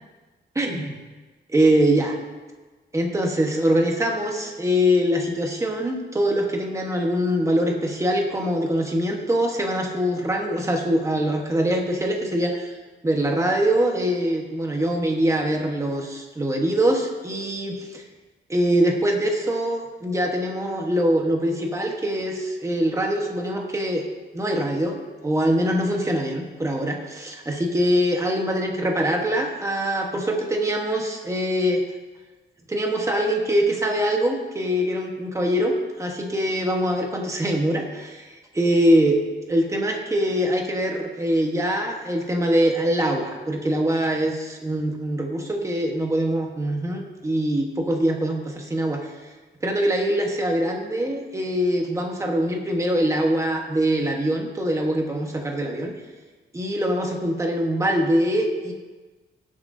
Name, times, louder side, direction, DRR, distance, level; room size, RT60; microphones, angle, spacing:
voice 1, 0.5-1.0 1.5-2.2 2.9-12.7 13.0-18.0 18.5-24.0 24.3-25.0 25.2-31.8 32.7-39.2 39.5-49.1 49.6-55.9 56.5-58.7, equal, 15° right, 1 dB, 1.2 m, -23 dB
18.0 x 7.6 x 2.7 m, 1.3 s
wide cardioid pair, 160°, 19 cm